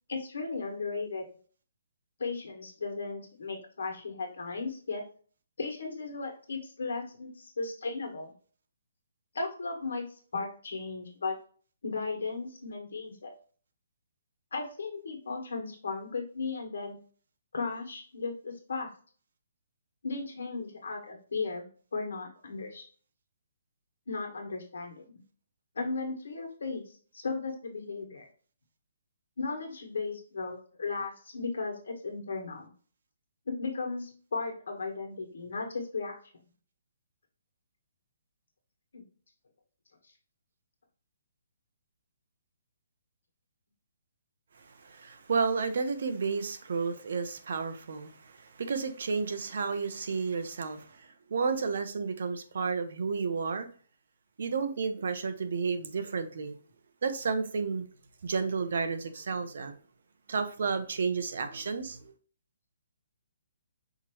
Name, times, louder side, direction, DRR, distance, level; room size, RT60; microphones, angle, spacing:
voice 1, 0.1-1.2 2.2-5.0 5.6-8.3 9.3-10.1 10.3-11.4 11.8-13.3 14.5-17.0 17.5-18.9 20.0-22.9 24.1-25.1 25.7-28.3 29.4-32.7 33.5-36.2 38.9-39.0, left 4 dB, 75° left, 1.6 m, -36 dB
voice 2, 44.6-53.7 54.4-56.6 57.0-57.9 58.2-59.7 60.3-62.1, right 5 dB, 50° right, 0.7 m, -32 dB
5.8 x 2.9 x 3.0 m
hypercardioid pair, 180°, 0 cm